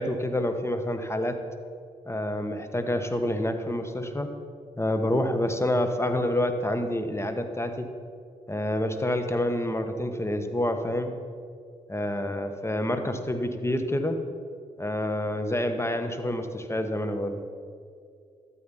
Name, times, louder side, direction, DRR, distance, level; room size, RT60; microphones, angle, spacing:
voice 1, 0.0-1.4 2.1-4.3 4.8-7.9 8.5-11.1 11.9-14.2 14.8-17.4, left 1 dB, 15° left, 7 dB, 1.5 m, -28 dB
13.0 x 8.6 x 5.6 m, 2.3 s
supercardioid pair, 45°, 15 cm